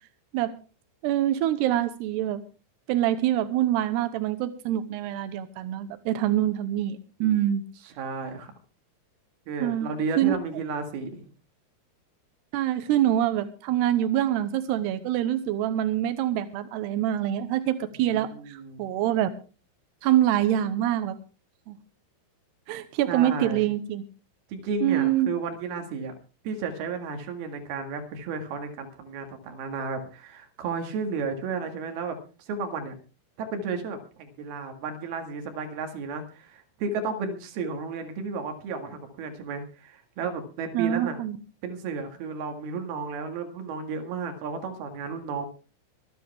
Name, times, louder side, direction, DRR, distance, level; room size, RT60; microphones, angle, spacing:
voice 1, 1.0-2.4 2.9-7.6 9.6-9.9 10.2-10.3 12.5-19.3 20.0-21.2 21.7-21.8 22.7-24.0 24.8-25.3 40.7-41.4, right 12 dB, 85° right, 11 dB, 2.4 m, -25 dB
voice 2, 7.8-8.5 9.5-11.3 18.1-18.8 23.1-23.7 24.5-26.1 26.4-32.9 33.4-41.2 41.6-45.5, right 4 dB, 60° right, 6 dB, 3.3 m, -33 dB
24.0 x 10.5 x 3.5 m, 0.34 s
omnidirectional pair, 5.9 m